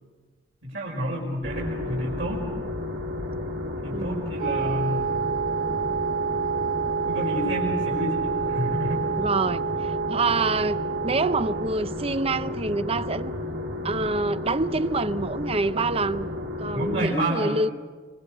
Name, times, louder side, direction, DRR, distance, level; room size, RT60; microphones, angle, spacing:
voice 1, 0.6-2.4 3.8-5.1 7.0-9.0 16.7-17.6, equal, 70° right, 5.8 m, -29 dB
sound 1, 1.4-17.1, left 2 dB, 85° right, 4.2 m, -32 dB
voice 2, 3.9-4.4 9.2-13.3 13.8-16.3 16.6-17.7, right 3 dB, 35° right, 0.7 m, -26 dB
Wind instrument woodwind instrument, 4.4-11.8, right 6 dB, 55° right, 1.2 m, -28 dB
25.5 x 25.0 x 6.7 m
head